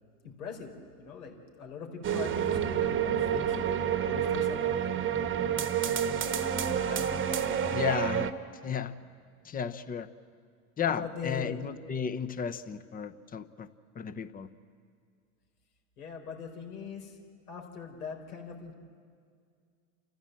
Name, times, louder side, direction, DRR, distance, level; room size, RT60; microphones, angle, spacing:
voice 1, 0.2-0.7 1.0-3.6 4.1-4.8 6.9-7.1 7.4-7.7 10.9-11.6 16.0-17.2 17.5-18.7, left 5 dB, 80° left, 2 dB, 4.0 m, -41 dB
sound 1, 2.0-8.3, right 8 dB, 25° right, 1.2 m, -29 dB
voice 2, 7.7-8.3 8.6-8.9 9.4-10.1 10.8-13.7 13.9-14.5, left 7 dB, 20° left, 13 dB, 0.9 m, -33 dB
29.5 x 14.5 x 7.6 m, 2.1 s
hypercardioid pair, 100°, 43 cm